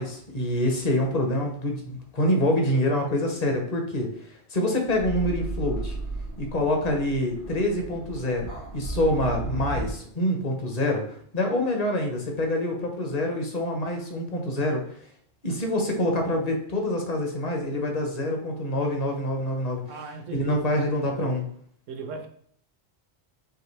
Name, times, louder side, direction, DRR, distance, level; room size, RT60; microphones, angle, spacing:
voice 1, 0.0-6.0 6.4-14.8 15.4-19.8 20.3-21.4, left 1 dB, 35° left, 2 dB, 0.8 m, -26 dB
sound 1, 4.9-9.9, right 2 dB, 70° left, 2.3 m, -34 dB
voice 2, 19.9-20.7 21.0-21.4 21.9-22.3, right 4 dB, 80° right, 6 dB, 1.0 m, -38 dB
4.9 x 2.9 x 3.1 m, 0.64 s
omnidirectional pair, 1.3 m